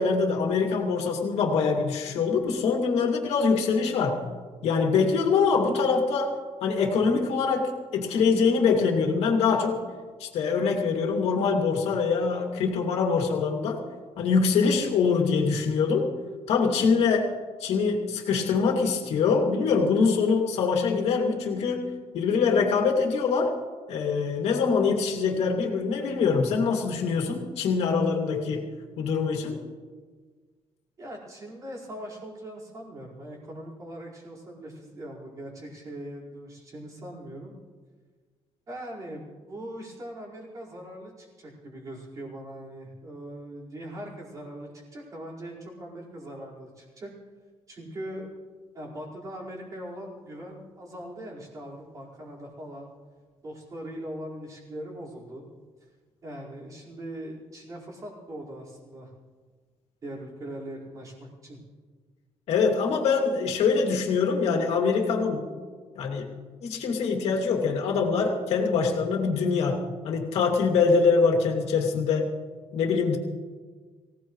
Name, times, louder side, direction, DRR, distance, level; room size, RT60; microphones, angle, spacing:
voice 1, 0.0-4.2 4.6-6.3 6.6-9.8 10.2-13.8 14.2-16.1 16.5-17.3 17.6-23.5 23.9-28.7 29.0-29.6 62.5-65.5 65.9-66.3 66.6-72.3 72.7-73.2, left 5 dB, 70° left, 1 dB, 2.5 m, -24 dB
voice 2, 31.0-37.5 38.7-47.1 47.7-48.3 48.7-52.9 53.4-55.4 56.2-59.1 60.0-61.6, right 1 dB, 30° right, -5 dB, 5.0 m, -40 dB
24.5 x 17.5 x 3.2 m, 1.5 s
cardioid pair, 170°, 11 cm